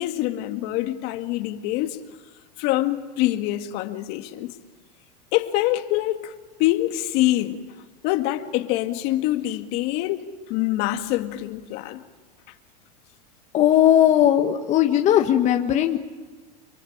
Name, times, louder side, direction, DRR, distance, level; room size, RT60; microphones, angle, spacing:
voice 1, 0.0-2.0 2.6-4.6 5.3-6.3 6.6-7.6 8.0-12.0, left 15 dB, 50° left, 2.0 m, -25 dB
voice 2, 13.5-16.0, left 11 dB, 35° left, 1.6 m, -18 dB
29.5 x 22.5 x 8.8 m
supercardioid pair, 130°, 21 cm